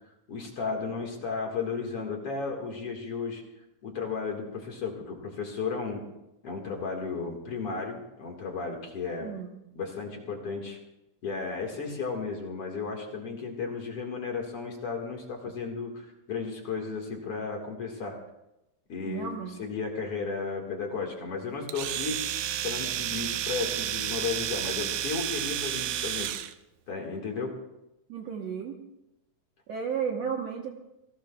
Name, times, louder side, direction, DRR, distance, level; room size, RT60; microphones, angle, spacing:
voice 1, 0.3-3.4 3.8-6.0 6.4-9.3 9.7-10.8 11.2-18.2 18.9-19.3 19.6-22.2 22.6-26.3 26.9-27.5, left 5 dB, 45° left, 1 dB, 2.5 m, -34 dB
voice 2, 19.0-19.6 28.1-28.8 29.7-30.7, right 7 dB, 65° right, 1 dB, 1.8 m, -33 dB
Domestic sounds home sounds, 21.7-26.5, right 12 dB, 80° right, 2.4 m, -31 dB
28.0 x 18.0 x 2.4 m, 0.90 s
omnidirectional pair, 4.2 m